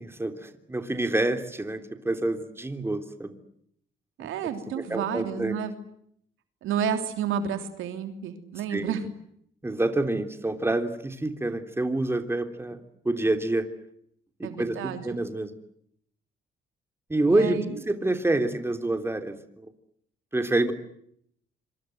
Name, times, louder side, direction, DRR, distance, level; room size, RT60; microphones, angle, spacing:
voice 1, 0.0-3.3 4.2-4.3 4.8-5.6 8.7-9.0 9.6-12.8 13.0-13.7 14.4-14.8 15.0-15.5 17.1-17.6 17.8-19.4 20.3-20.7, right 2 dB, 10° right, 7 dB, 3.3 m, -27 dB
voice 2, 4.2-5.7 6.6-9.0 14.4-15.2 17.3-17.7, right 8 dB, 85° right, 7 dB, 3.2 m, -30 dB
26.5 x 25.0 x 7.9 m, 0.70 s
cardioid pair, 90°, 20 cm